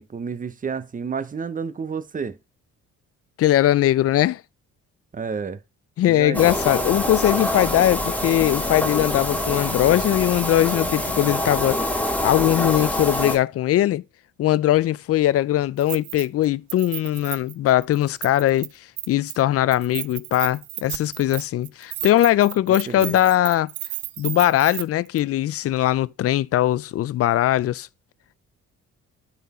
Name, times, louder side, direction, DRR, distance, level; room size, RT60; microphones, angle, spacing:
voice 1, 0.0-2.4 5.1-5.6 6.1-6.5 22.7-23.2, right 5 dB, 25° right, 0.7 m, -30 dB
voice 2, 3.4-4.4 6.0-11.9 12.2-14.0 14.4-18.7 19.1-23.7 24.2-27.9, left 13 dB, 50° left, 0.4 m, -20 dB
sound 1, 6.3-13.4, left 1 dB, 5° left, 1.2 m, -25 dB
Keys jangling, 15.8-16.4 16.7-18.7 19.0-19.4 19.7-24.8 25.2-25.3, right 17 dB, 75° right, 0.5 m, -33 dB
9.3 x 4.2 x 4.2 m
cardioid pair, 90°, 30 cm